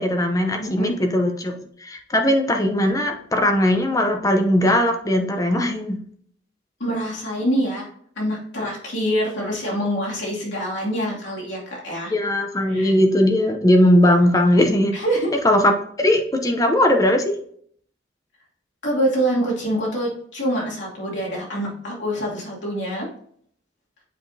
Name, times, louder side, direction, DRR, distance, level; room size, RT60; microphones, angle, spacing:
voice 1, 0.0-6.0 12.1-15.0 15.4-17.3, left 1 dB, 20° left, 4 dB, 0.7 m, -19 dB
voice 2, 0.6-0.9 6.8-7.9 8.2-12.1 12.7-12.9 14.9-15.4 18.8-23.1, equal, 80° left, -4 dB, 2.5 m, -25 dB
7.6 x 5.0 x 2.7 m, 0.62 s
head